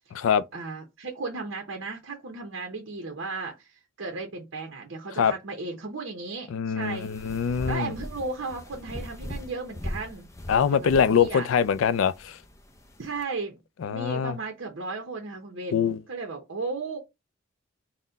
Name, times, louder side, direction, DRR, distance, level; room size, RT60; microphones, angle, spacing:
voice 1, 0.5-10.3 10.7-11.5 13.0-13.6 13.9-17.0, right 3 dB, 65° right, 0.8 m, -35 dB
voice 2, 6.5-7.9 10.5-12.4 13.8-14.4 15.7-16.0, left 7 dB, 80° left, 0.4 m, -23 dB
sound 1, 6.8-13.2, left 1 dB, 15° left, 0.5 m, -40 dB
4.0 x 2.1 x 3.9 m
head